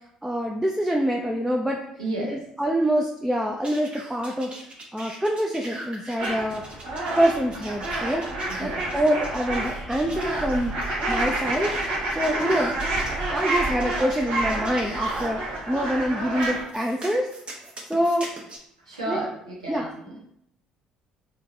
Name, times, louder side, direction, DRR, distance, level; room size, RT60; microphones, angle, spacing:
voice 1, 0.2-1.8 2.3-4.5 4.9-6.6 7.2-8.3 8.6-11.7 12.1-12.7 13.3-17.3 17.9-18.3 19.1-19.2 19.7-19.8, equal, 5° right, 0 dB, 0.5 m, -25 dB
voice 2, 2.0-2.4 8.5-8.9 12.2-13.1 18.8-20.2, right 2 dB, 85° right, -5 dB, 1.0 m, -34 dB
sound 1, 3.6-15.3 16.4-18.6, right 1 dB, 35° right, 1.1 m, -41 dB
sound 2, 6.2-16.6, right 2 dB, 70° right, 1.3 m, -29 dB
3.8 x 3.3 x 2.6 m, 0.72 s
figure-of-eight pair, 50°, 3 cm